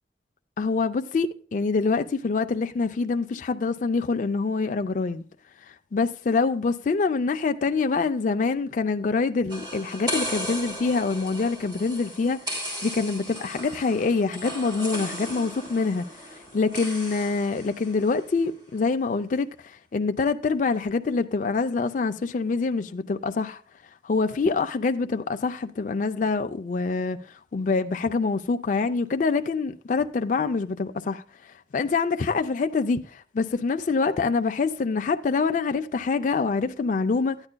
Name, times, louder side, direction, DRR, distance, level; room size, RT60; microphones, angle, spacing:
voice 1, 0.6-5.2 5.7-12.4 12.8-16.0 16.5-23.6 24.0-27.2 27.5-31.2 31.7-37.4, left 4 dB, 45° left, 0.4 m, -25 dB
sound 1, 9.5-18.2, equal, 25° right, 2.9 m, -36 dB
13.0 x 9.7 x 2.2 m
head